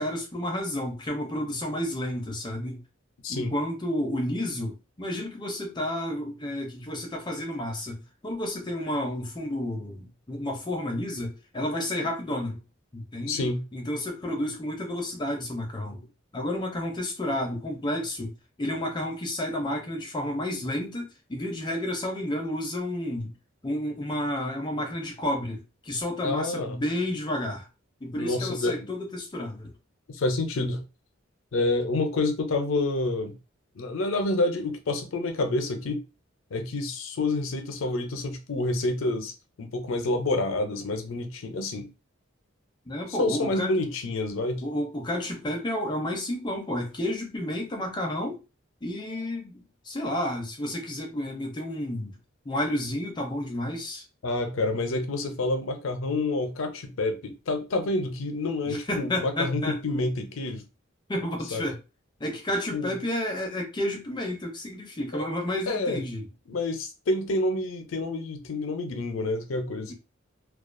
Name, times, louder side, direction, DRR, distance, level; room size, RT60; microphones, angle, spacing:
voice 1, 0.0-2.8 3.3-12.6 12.9-13.4 13.7-16.0 16.3-23.3 23.6-27.7 28.0-29.7 42.9-43.7 44.6-48.4 48.8-52.2 52.5-54.0 58.7-59.8 61.1-61.8 62.2-66.3 69.9-70.0, left 1 dB, 20° left, 0.5 m, -31 dB
voice 2, 13.2-13.6 26.2-26.8 28.2-28.9 30.1-30.8 31.5-33.3 33.8-36.0 36.5-39.3 39.6-41.9 43.1-44.6 54.2-60.6 61.5-61.6 62.7-62.9 65.1-65.2 65.7-66.0 66.5-69.9, left 2 dB, 80° left, 0.5 m, -28 dB
2.3 x 2.2 x 2.4 m
head